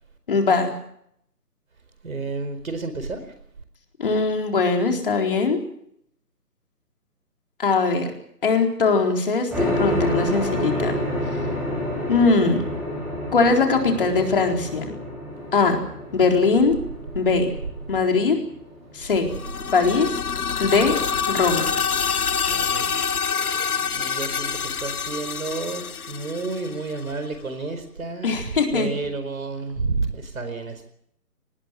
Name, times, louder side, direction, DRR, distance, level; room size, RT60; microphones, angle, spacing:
voice 1, 0.3-0.7 4.0-5.6 7.6-8.1 8.4-10.9 12.1-12.6 13.3-14.8 15.5-15.8 16.1-16.8 17.1-17.5 17.9-18.4 18.9-19.3 19.7-20.2 20.6-20.9 21.3-21.7 28.2-28.9, left 4 dB, 35° left, 3 dB, 4.2 m, -20 dB
voice 2, 2.0-3.3 22.1-30.8, right 3 dB, 60° right, 9 dB, 4.7 m, -31 dB
sound 1, 9.5-19.6, left 1 dB, 5° right, 7.2 m, -29 dB
sound 2, 19.3-27.1, left 6 dB, 65° left, 1.1 m, -26 dB
25.5 x 20.0 x 7.6 m, 0.70 s
hypercardioid pair, 175°, 47 cm